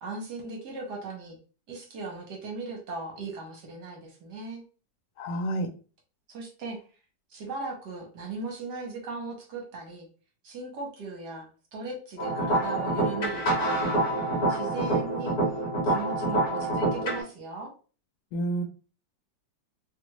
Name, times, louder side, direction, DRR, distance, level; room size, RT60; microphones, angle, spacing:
voice 1, 0.0-1.4 1.7-4.6 6.3-6.8 7.3-10.1 10.4-13.8 14.5-15.3 15.8-17.7, right 3 dB, 65° right, 0 dB, 1.5 m, -38 dB
voice 2, 5.2-5.7 18.3-18.6, right 1 dB, 75° left, 5 dB, 1.2 m, -29 dB
sound 1, 12.2-17.2, right 1 dB, 50° left, 1.2 m, -26 dB
3.2 x 2.5 x 2.9 m, 0.37 s
omnidirectional pair, 2.0 m